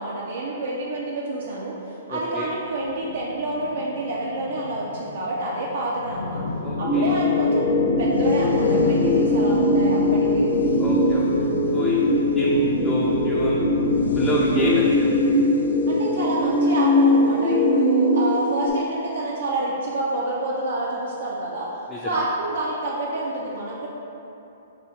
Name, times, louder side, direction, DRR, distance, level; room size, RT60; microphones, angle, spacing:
voice 1, 0.0-6.4 6.8-10.5 11.8-12.3 14.3-14.7 15.9-21.7 22.0-23.9, right 2 dB, 70° right, -4 dB, 0.5 m, -28 dB
voice 2, 2.1-2.5 6.6-7.1 10.8-11.3 11.7-12.0 12.4-13.6 14.1-15.2 21.9-22.1, left 1 dB, 10° left, -6 dB, 0.4 m, -28 dB
sound 1, 2.8-18.2, left 3 dB, 75° left, 0.3 m, -31 dB
sound 2, 6.8-18.7, left 1 dB, 55° left, 0.8 m, -21 dB
4.9 x 2.6 x 3.1 m, 2.9 s
hypercardioid pair, 120°, 0 cm